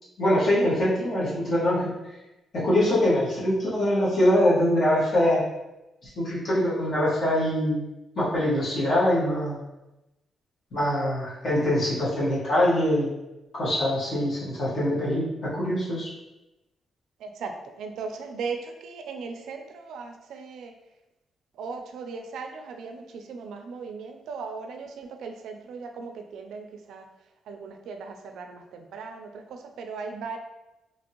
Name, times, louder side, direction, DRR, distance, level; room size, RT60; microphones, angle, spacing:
voice 1, 0.2-1.9 2.5-5.4 6.2-7.8 8.1-9.6 10.7-13.1 13.5-16.1, left 1 dB, 50° left, -7 dB, 1.2 m, -23 dB
voice 2, 17.2-20.7 21.5-27.1 27.5-30.4, right 5 dB, 90° right, 5 dB, 0.3 m, -38 dB
2.8 x 2.6 x 2.8 m, 0.97 s
cardioid pair, 150°, 0 cm